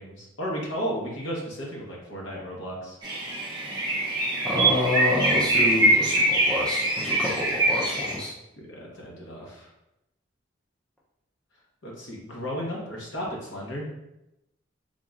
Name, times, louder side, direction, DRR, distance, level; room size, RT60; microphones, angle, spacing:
voice 1, 0.0-3.0 8.6-9.7 11.8-13.9, equal, 75° left, -2 dB, 1.0 m, -34 dB
sound 1, 3.0-8.1, right 1 dB, 20° right, 0.8 m, -23 dB
voice 2, 4.4-8.3, left 1 dB, 5° left, -6 dB, 0.5 m, -28 dB
3.8 x 3.0 x 2.4 m, 0.89 s
head